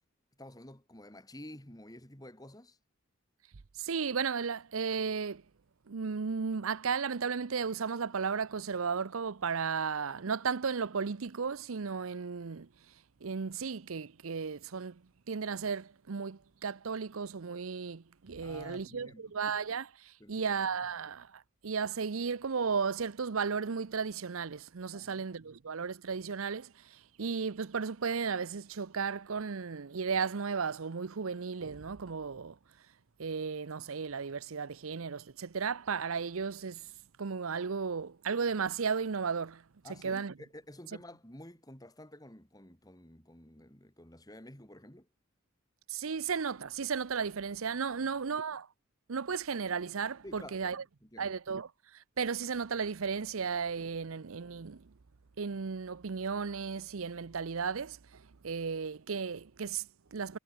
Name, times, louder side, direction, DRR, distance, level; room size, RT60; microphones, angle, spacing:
voice 1, 0.4-2.8 18.4-19.4 20.2-20.5 24.9-25.3 39.8-45.1 47.9-48.1 50.2-51.3, left 1 dB, 15° left, 3.0 m, -51 dB
voice 2, 3.8-5.4 5.9-12.7 13.2-15.0 15.3-32.6 33.2-36.9 37.2-39.6 40.0-40.3 45.9-48.7 49.1-50.8 51.2-54.9 55.4-60.4, right 5 dB, 75° right, 0.7 m, -35 dB
head